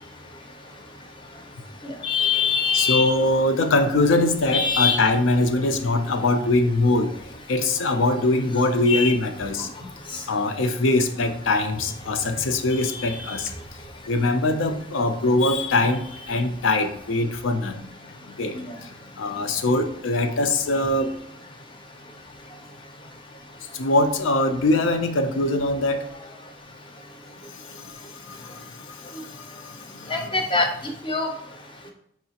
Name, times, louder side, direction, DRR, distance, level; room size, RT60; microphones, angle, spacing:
voice 1, 1.8-3.1 4.5-5.0 8.9-9.1 12.8-12.9 13.2-13.4 18.6-18.7 30.1-30.7 31.0-31.3, left 5 dB, 25° left, 4 dB, 0.5 m, -23 dB
voice 2, 2.7-7.1 7.5-9.7 10.3-13.5 14.1-17.8 18.4-18.6 19.2-21.1 23.7-26.0 28.3-28.4 30.1-30.3, left 2 dB, 80° left, 7 dB, 0.5 m, -22 dB
4.7 x 3.1 x 2.8 m, 0.74 s
head